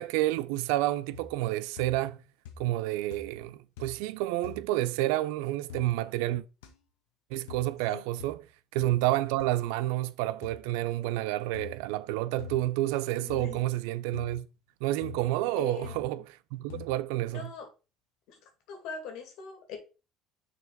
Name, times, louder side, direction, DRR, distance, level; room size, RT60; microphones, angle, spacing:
voice 1, 0.0-2.2 2.6-6.4 7.3-8.5 8.7-14.5 14.8-16.2 16.5-17.5, right 16 dB, 85° right, 0.4 m, -29 dB
sound 1, 1.1-1.5 1.8-2.2 2.5-2.9 3.1-3.5 3.8-4.1 4.4-4.6 5.7-5.9 6.6-6.7 7.5-7.7 8.2-8.4 8.8-9.0 9.4-9.5 10.4-10.6 11.5-11.8 12.4-12.7 13.3-13.6 14.1-14.4 15.0-15.3 15.8-16.1 16.7-17.0, left 7 dB, 90° left, 1.1 m, -45 dB
voice 2, 13.2-13.6 15.6-16.2 17.3-17.7 18.3-19.8, left 6 dB, 75° left, 2.3 m, -42 dB
6.6 x 4.2 x 4.1 m
supercardioid pair, 80°, 0 cm